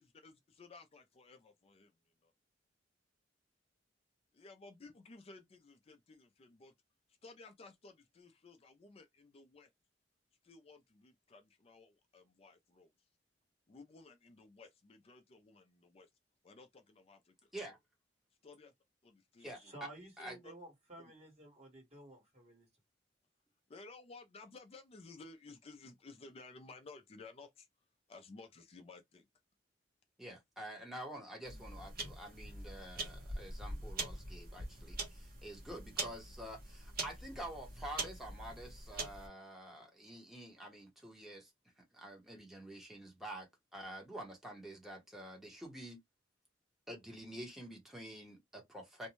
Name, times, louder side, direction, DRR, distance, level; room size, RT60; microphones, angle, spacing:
voice 1, 0.0-1.9 2.2-2.3 4.3-6.7 7.2-9.7 10.4-12.9 13.7-16.1 16.4-17.5 18.4-18.7 19.0-19.7 20.4-20.5 23.7-27.7 28.1-29.3, left 3 dB, 35° left, 0.4 m, -56 dB
voice 2, 19.4-22.7, right 1 dB, 35° right, 1.4 m, -54 dB
voice 3, 30.2-41.5 41.9-46.0 46.9-49.1, right 1 dB, ahead, 0.9 m, -48 dB
sound 1, 31.5-39.3, right 2 dB, 55° right, 1.0 m, -44 dB
2.5 x 2.2 x 2.9 m
head